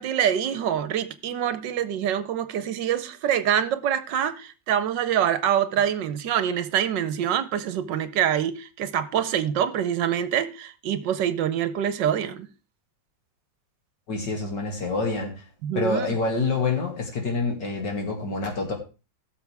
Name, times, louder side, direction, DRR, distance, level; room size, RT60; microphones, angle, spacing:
voice 1, 0.0-12.5 15.6-16.1, right 9 dB, 75° right, 1.4 m, -25 dB
voice 2, 14.1-15.4 15.7-18.7, left 3 dB, 70° left, 2.9 m, -27 dB
17.0 x 6.9 x 3.4 m
omnidirectional pair, 2.0 m